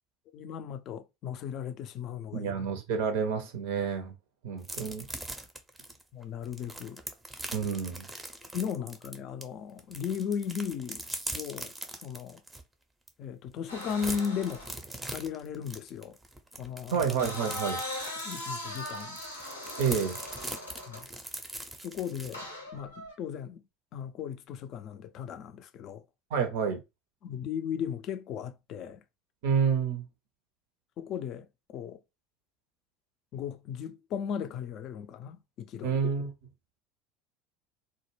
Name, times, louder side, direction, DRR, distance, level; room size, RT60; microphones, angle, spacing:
voice 1, 0.3-2.5 6.1-7.0 7.6-7.7 8.5-11.0 11.3-12.4 13.2-14.7 15.1-16.2 16.6-17.1 18.2-19.2 20.9-21.1 21.8-23.6 23.9-26.0 27.2-29.0 31.0-31.5 31.7-32.0 33.3-36.0, left 7 dB, 45° left, 0.3 m, -36 dB
voice 2, 2.3-4.1 4.4-5.1 7.5-8.1 16.9-17.8 19.8-20.2 26.3-26.8 29.4-30.1 35.8-36.3, right 6 dB, 65° right, 0.5 m, -29 dB
sound 1, 4.6-9.4 9.8-12.6 13.1-13.2 13.5-22.3, right 1 dB, 10° right, 0.5 m, -41 dB
sound 2, 13.7-14.8 16.9-21.1 22.3-23.1, left 1 dB, 85° left, 0.6 m, -39 dB
2.1 x 2.0 x 3.1 m
figure-of-eight pair, 70°, 0 cm